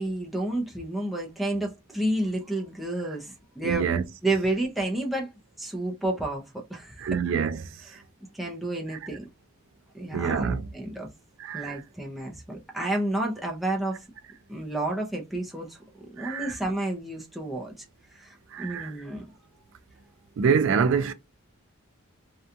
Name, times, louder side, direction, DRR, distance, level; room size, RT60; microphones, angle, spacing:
voice 1, 0.0-3.9 4.2-5.3 5.6-7.0 8.3-9.3 9.9-11.1 11.5-14.0 14.5-15.8 16.1-17.7 18.1-19.2, right 1 dB, ahead, 0.5 m, -30 dB
voice 2, 3.6-4.0 7.0-8.0 8.9-9.0 10.1-10.6 11.4-11.8 16.2-16.6 18.5-18.9 20.4-21.1, right 6 dB, 60° right, 0.3 m, -26 dB
2.7 x 2.2 x 2.4 m
head